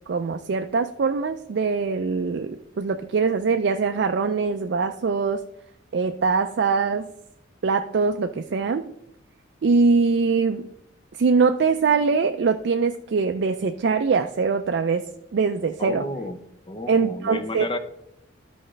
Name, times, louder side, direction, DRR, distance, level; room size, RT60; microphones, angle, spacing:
voice 1, 0.1-5.4 5.9-7.1 7.6-8.8 9.6-10.7 11.2-15.0 15.3-16.0 16.9-17.7, right 4 dB, 60° right, 7 dB, 0.4 m, -22 dB
voice 2, 15.8-16.4 16.7-17.8, left 1 dB, 25° left, 9 dB, 0.6 m, -31 dB
12.5 x 4.9 x 3.2 m, 0.78 s
head